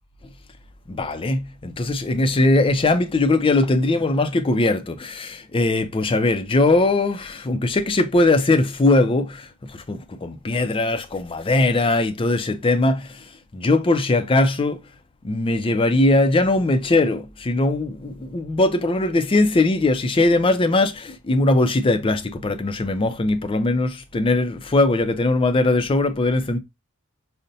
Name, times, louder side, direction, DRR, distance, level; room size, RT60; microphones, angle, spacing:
voice 1, 0.9-13.2 13.5-14.8 15.2-26.6, left 2 dB, 25° left, 0.4 m, -20 dB
5.1 x 2.1 x 2.7 m
head